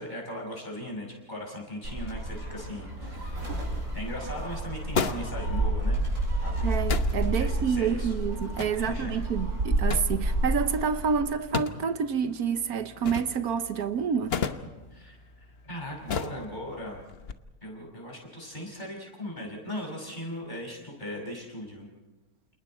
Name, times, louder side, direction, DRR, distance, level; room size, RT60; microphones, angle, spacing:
voice 1, 0.0-3.5 3.9-6.1 6.4-6.8 7.1-8.1 8.7-9.2 14.9-15.2 15.6-17.0 17.6-21.9, equal, 30° left, 6.1 m, -38 dB
Gull seagull, 1.8-11.2, right 1 dB, 65° right, 7.8 m, -30 dB
sound 1, 3.2-17.3, left 6 dB, 45° left, 1.1 m, -38 dB
voice 2, 6.6-14.4, right 6 dB, 80° right, 1.5 m, -28 dB
29.0 x 28.5 x 4.4 m
omnidirectional pair, 1.6 m